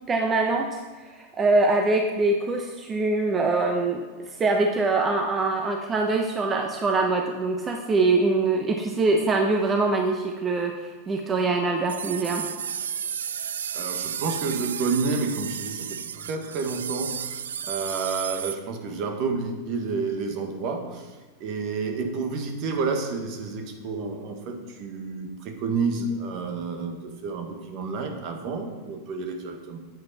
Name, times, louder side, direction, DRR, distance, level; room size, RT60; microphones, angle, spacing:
voice 1, 0.1-0.8 1.4-4.0 4.4-10.7 11.1-12.4, right 3 dB, 25° right, 3 dB, 1.0 m, -23 dB
sound 1, 11.9-18.6, right 8 dB, 85° right, 0.4 m, -33 dB
voice 2, 13.7-29.8, right 4 dB, 50° right, 5 dB, 1.7 m, -30 dB
9.4 x 8.6 x 4.3 m, 1.4 s
hypercardioid pair, 105°, 0 cm